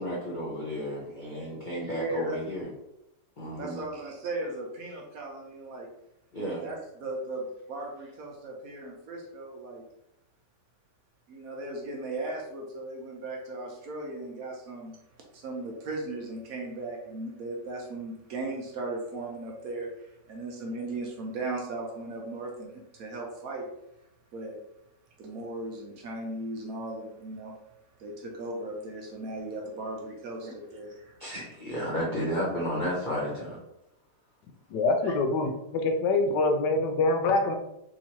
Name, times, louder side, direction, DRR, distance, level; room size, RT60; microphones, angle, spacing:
voice 1, 0.0-2.7 3.4-3.8 6.3-6.6 31.2-33.6 35.0-35.1, equal, 60° left, -5 dB, 0.5 m, -32 dB
voice 2, 1.9-2.4 3.6-5.9 6.6-9.8 11.3-15.0 15.3-23.7 24.3-24.6 25.2-27.5 28.0-31.2, right 2 dB, 65° right, -1 dB, 0.9 m, -37 dB
voice 3, 34.7-37.6, left 2 dB, 80° left, 5 dB, 1.2 m, -25 dB
3.5 x 2.9 x 2.8 m, 0.85 s
omnidirectional pair, 1.9 m